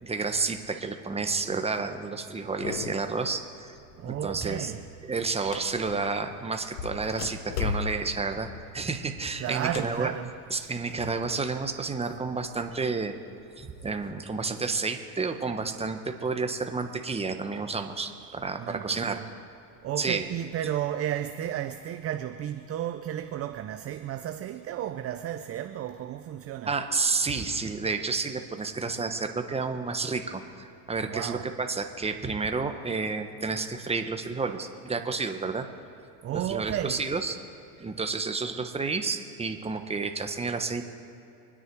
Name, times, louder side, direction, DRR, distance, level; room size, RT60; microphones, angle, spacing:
voice 1, 0.0-3.7 4.0-4.7 5.0-8.5 8.7-10.1 10.5-13.1 13.6-19.2 20.0-20.3 26.7-35.7 36.3-37.4 37.8-40.8, right 4 dB, 15° right, 1.2 m, -30 dB
sound 1, 2.6-3.2 3.6-4.0 4.4-6.2 6.7-11.4 11.7-12.7 13.3-14.1, left 5 dB, 85° left, 1.4 m, -37 dB
voice 2, 4.0-4.9 9.4-10.3 18.6-19.3 19.8-26.7 31.1-31.5 36.2-37.0, right 11 dB, 30° right, 0.6 m, -33 dB
25.0 x 10.0 x 4.7 m
hypercardioid pair, 95°, 46 cm